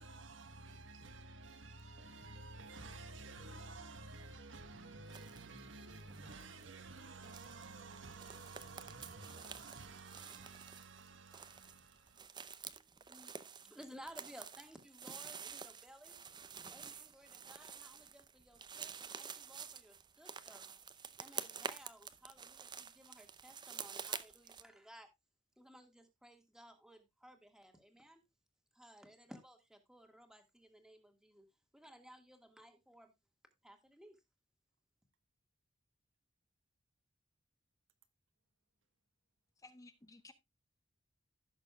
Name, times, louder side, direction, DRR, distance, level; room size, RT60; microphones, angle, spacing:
voice 1, 0.0-12.5, right 3 dB, 75° right, 1.3 m, -52 dB
sound 1, 5.0-5.5 5.8-24.6, right 6 dB, 25° right, 0.6 m, -49 dB
voice 2, 12.6-16.2 16.7-20.6 21.2-25.1 25.6-28.2 28.7-31.5 31.7-33.1 33.6-34.2, equal, 5° right, 1.6 m, -58 dB
voice 3, 39.6-40.3, left 2 dB, 20° left, 0.6 m, -57 dB
16.0 x 6.6 x 2.3 m
head